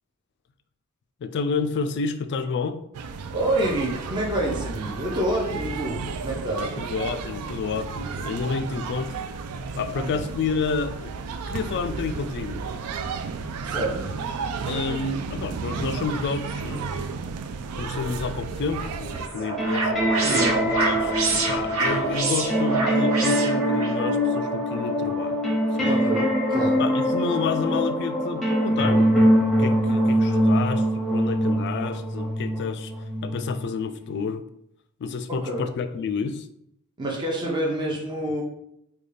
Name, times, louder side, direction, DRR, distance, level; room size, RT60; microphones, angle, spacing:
voice 1, 1.2-2.8 6.6-9.1 9.7-11.1 11.5-12.6 14.6-17.1 17.8-20.0 20.6-25.4 25.8-25.9 26.8-32.9 33.2-34.4 35.0-36.5, left 5 dB, 50° left, 10 dB, 0.3 m, -30 dB
sound 1, 2.9-19.3, right 5 dB, 90° right, 0.3 m, -33 dB
voice 2, 3.3-6.7 9.9-10.2 13.6-14.1 20.2-20.6 25.8-26.8 35.3-35.7 37.0-38.4, right 1 dB, 20° right, -2 dB, 0.6 m, -28 dB
sound 2, 18.8-24.0, right 3 dB, 70° right, 0.8 m, -26 dB
sound 3, 19.6-34.2, equal, ahead, 0.9 m, -23 dB
3.8 x 2.3 x 3.2 m, 0.75 s
head